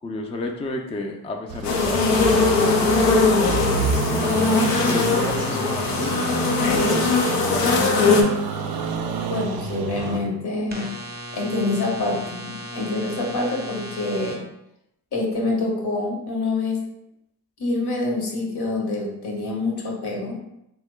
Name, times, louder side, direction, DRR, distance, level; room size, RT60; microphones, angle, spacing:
voice 1, 0.0-3.1 3.8-4.5 4.9-8.3 8.7-8.8, left 2 dB, 15° left, 2 dB, 0.3 m, -33 dB
sound 1, 1.5-10.2, right 5 dB, 60° right, 0.5 m, -28 dB
sound 2, 1.6-8.2, left 4 dB, 90° left, 0.5 m, -20 dB
sound 3, 4.2-7.3 10.7-14.4, equal, 25° right, 0.7 m, -36 dB
voice 2, 9.3-10.9 11.3-14.4 15.1-16.8 17.6-20.4, left 2 dB, 65° left, -1 dB, 1.0 m, -26 dB
2.8 x 2.1 x 3.2 m, 0.83 s
cardioid pair, 50°, 41 cm